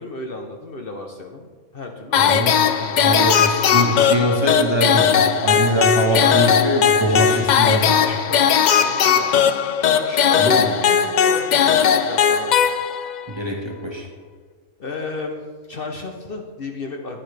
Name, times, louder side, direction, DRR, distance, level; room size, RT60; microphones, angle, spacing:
voice 1, 0.0-3.3 6.0-6.4 7.0-8.4 8.7-9.3 9.8-12.7 14.8-17.2, left 3 dB, 50° left, 3 dB, 0.9 m, -33 dB
sound 1, 2.1-13.2, left 8 dB, 80° left, 0.4 m, -18 dB
voice 2, 2.1-2.5 2.8-5.1 5.4-7.8 10.4-10.7 13.3-14.1, equal, 20° right, 0 dB, 1.3 m, -22 dB
10.5 x 9.9 x 3.3 m, 1.5 s
omnidirectional pair, 1.3 m